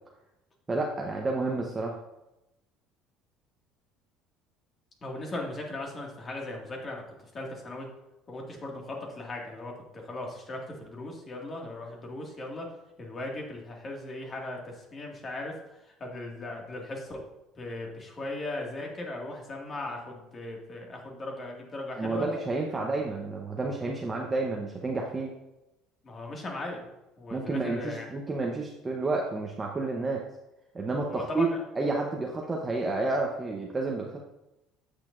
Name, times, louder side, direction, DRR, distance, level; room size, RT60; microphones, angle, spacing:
voice 1, 0.7-2.0 22.0-25.3 27.3-30.2 30.7-31.5 31.7-34.1, right 3 dB, 25° right, 0 dB, 0.9 m, -30 dB
voice 2, 5.0-7.0 7.3-7.9 8.3-12.7 13.0-15.5 16.0-17.2 17.6-22.3 22.7-22.8 26.0-26.9 27.2-28.1 31.1-31.6, left 2 dB, 35° left, 0 dB, 2.0 m, -38 dB
8.3 x 6.6 x 2.6 m, 0.93 s
supercardioid pair, 85°, 0 cm